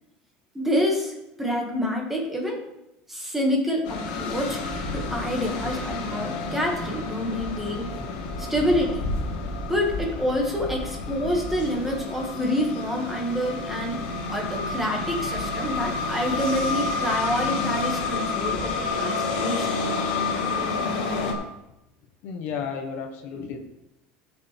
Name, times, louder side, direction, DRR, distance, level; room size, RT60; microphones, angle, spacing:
voice 1, 0.5-2.6 3.1-7.9 8.4-9.1 9.7-14.0 14.3-19.9, equal, 5° right, -1 dB, 2.0 m, -27 dB
sound 1, 3.8-21.3, left 3 dB, 90° left, 2.0 m, -29 dB
voice 2, 22.2-23.6, left 6 dB, 55° left, 4 dB, 1.2 m, -33 dB
15.5 x 6.7 x 3.5 m, 0.90 s
cardioid pair, 140°, 4 cm